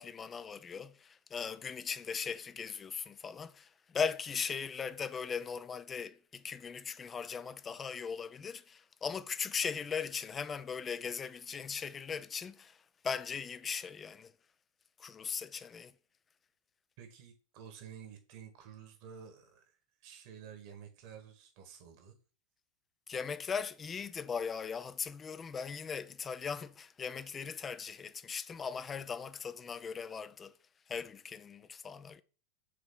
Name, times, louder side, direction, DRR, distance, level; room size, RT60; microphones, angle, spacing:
voice 1, 0.0-14.3 15.0-15.9 23.1-30.5 30.9-32.2, left 6 dB, 20° left, 0.5 m, -39 dB
voice 2, 17.0-22.2, right 8 dB, 45° right, 1.6 m, -51 dB
5.0 x 4.0 x 5.4 m
figure-of-eight pair, 90°, 0 cm